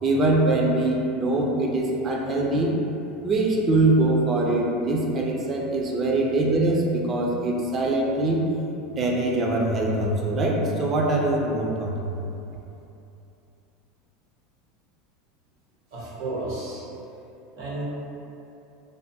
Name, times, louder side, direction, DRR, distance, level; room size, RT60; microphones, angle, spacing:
voice 1, 0.0-2.7 3.2-8.5 9.0-12.1, right 2 dB, 30° right, -1 dB, 0.4 m, -23 dB
voice 2, 15.9-16.8 17.6-17.8, right 2 dB, 75° right, -7 dB, 1.2 m, -32 dB
3.3 x 2.2 x 2.7 m, 2.8 s
supercardioid pair, 115°, 0 cm